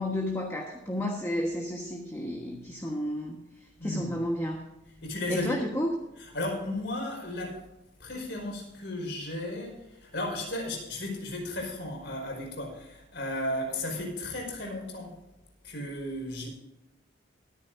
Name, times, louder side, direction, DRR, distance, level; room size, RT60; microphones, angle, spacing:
voice 1, 0.0-3.4 3.8-4.6 5.3-5.9, left 1 dB, 15° left, 1 dB, 1.3 m, -31 dB
voice 2, 3.8-4.1 5.0-5.6 6.2-7.7 8.0-15.2 15.6-16.5, left 1 dB, 60° left, 0 dB, 5.1 m, -34 dB
23.0 x 10.0 x 2.6 m, 0.98 s
head